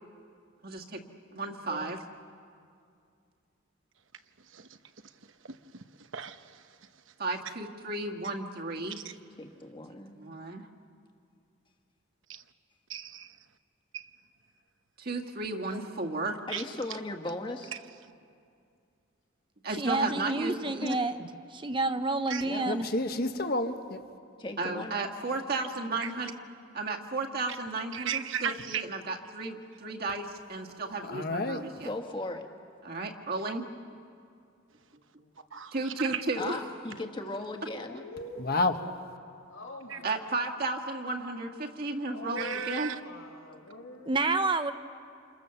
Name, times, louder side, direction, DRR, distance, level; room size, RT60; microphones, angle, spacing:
voice 1, 0.6-1.0 1.3-2.0 7.2-9.0 10.1-10.7 15.0-16.4 19.6-20.5 24.6-26.3 26.7-31.9 32.8-33.7 35.7-36.6 40.0-42.9, right 3 dB, 50° right, 1 dB, 1.9 m, -34 dB
voice 2, 1.5-1.8 21.2-21.4 35.2-35.3 37.7-38.5 39.5-40.3 42.0-44.2, left 1 dB, 85° left, 1 dB, 4.7 m, -44 dB
voice 3, 4.5-4.8 5.4-6.8 9.0-9.2 12.3-12.4 12.9-13.4 13.9-14.1 15.7-15.8 16.5-16.6 20.8-20.9 22.3-22.4 26.0-26.1 27.9-28.8 35.5-36.2 39.9-40.0 42.4-43.0, right 8 dB, 70° right, 9 dB, 1.0 m, -36 dB
voice 4, 9.4-10.1 16.5-17.7 20.8-21.0 22.4-22.7 24.4-25.0 31.8-32.5 36.4-38.0, left 2 dB, 25° left, 4 dB, 1.8 m, -37 dB
voice 5, 19.8-21.2 21.5-22.8 44.1-44.7, right 3 dB, 25° right, 9 dB, 0.7 m, -29 dB
voice 6, 22.7-24.0 31.0-31.6 38.4-38.7, left 2 dB, 50° left, 6 dB, 1.4 m, -29 dB
29.0 x 28.0 x 7.1 m, 2.4 s
head